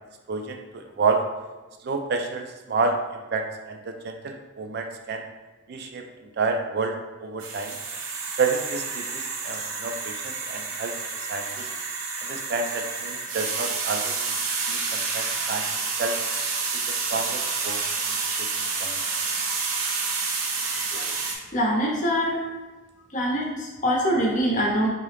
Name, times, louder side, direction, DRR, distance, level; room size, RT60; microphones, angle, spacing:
voice 1, 0.3-1.2 1.8-2.9 3.3-5.3 5.7-6.1 6.4-6.9 7.2-7.8 8.4-10.9 11.3-11.7 12.2-14.3 14.7-15.7 16.0-16.1 16.9-17.8 18.3-18.5 18.8-19.0, right 4 dB, 50° right, 4 dB, 0.3 m, -29 dB
sound 1, 7.4-21.4, right 4 dB, 90° right, 0.6 m, -29 dB
voice 2, 20.7-21.2 21.5-22.5 23.1-24.9, equal, 40° left, -2 dB, 0.7 m, -24 dB
3.7 x 2.8 x 3.3 m, 1.2 s
head